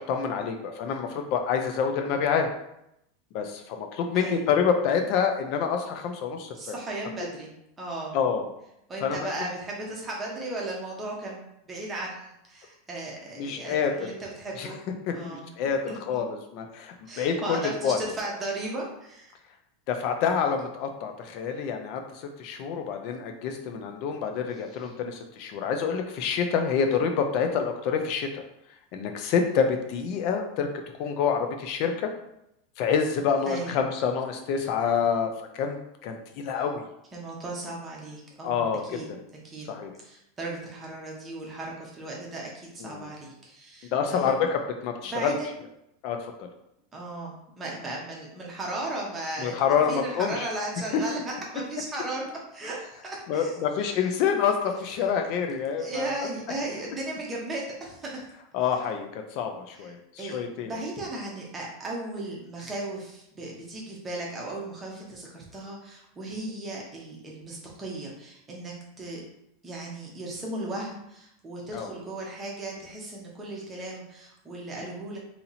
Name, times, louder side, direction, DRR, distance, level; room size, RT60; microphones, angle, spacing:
voice 1, 0.0-2.5 3.3-6.7 8.1-8.5 9.0-9.3 13.4-14.1 14.6-14.7 15.1-18.0 19.9-28.4 28.9-30.7 31.0-32.1 32.8-36.8 38.4-39.2 39.7-39.9 42.8-43.1 43.9-45.4 46.0-46.5 49.4-50.5 50.9-51.0 53.3-56.1 58.5-60.7 71.7-71.9, left 6 dB, 40° left, 5 dB, 0.4 m, -27 dB
voice 2, 4.1-4.5 6.5-7.5 7.8-8.2 8.9-14.8 15.1-15.5 15.9-16.0 17.1-19.3 33.5-33.8 37.1-39.1 39.4-39.8 40.0-44.3 45.0-45.5 46.9-49.6 49.9-52.3 52.5-53.6 55.8-58.2 59.7-59.9 60.2-60.4 60.6-69.2 69.6-75.2, right 2 dB, 10° right, -3 dB, 0.8 m, -36 dB
2.8 x 2.8 x 4.0 m, 0.80 s
supercardioid pair, 175°, 0 cm